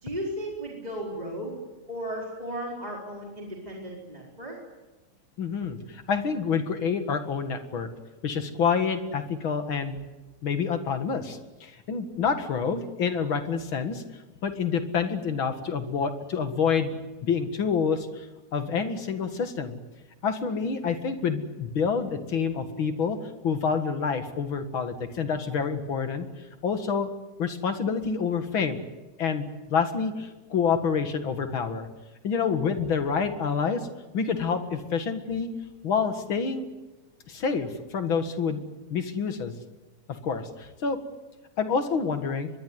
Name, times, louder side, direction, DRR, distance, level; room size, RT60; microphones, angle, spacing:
voice 1, 0.0-1.6 1.9-4.6 20.4-20.6, equal, 10° right, -3 dB, 4.6 m, -35 dB
voice 2, 5.4-7.9 8.2-10.0 10.4-14.0 14.4-16.9 17.2-18.3 18.5-19.8 20.2-23.2 23.4-26.3 26.6-27.1 27.4-28.9 29.2-31.9 32.2-33.9 34.1-35.5 35.8-36.7 37.3-38.6 38.9-39.5 40.1-41.0 41.6-42.5, left 6 dB, 45° left, 8 dB, 2.3 m, -27 dB
24.0 x 22.0 x 9.5 m, 1.1 s
omnidirectional pair, 3.6 m